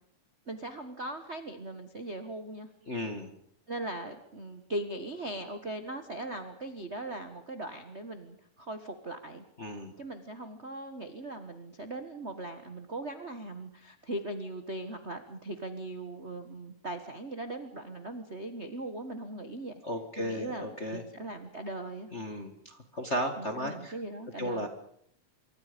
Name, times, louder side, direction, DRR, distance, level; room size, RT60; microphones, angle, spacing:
voice 1, 0.5-2.7 3.7-9.4 10.0-19.7 20.2-22.1 23.4-24.7, right 1 dB, 45° right, 7 dB, 0.8 m, -39 dB
voice 2, 2.9-3.3 9.6-9.9 19.8-21.0 22.1-23.9 24.4-24.7, equal, 30° left, 5 dB, 1.3 m, -35 dB
26.0 x 23.5 x 5.3 m, 0.70 s
omnidirectional pair, 3.8 m